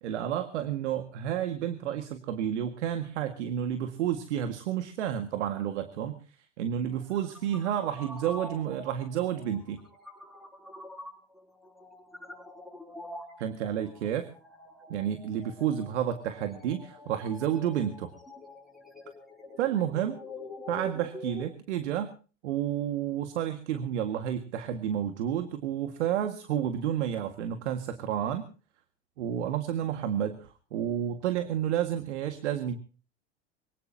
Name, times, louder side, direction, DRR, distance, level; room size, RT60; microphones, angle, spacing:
voice 1, 0.0-6.2 6.6-9.8 13.4-14.3 14.9-18.1 19.6-20.2 20.7-22.1 22.4-28.5 29.2-32.8, right 10 dB, 75° right, 8 dB, 1.9 m, -30 dB
sound 1, 6.9-21.4, left 2 dB, ahead, 5.3 m, -46 dB
24.0 x 17.5 x 2.8 m, 0.37 s
hypercardioid pair, 95°, 35 cm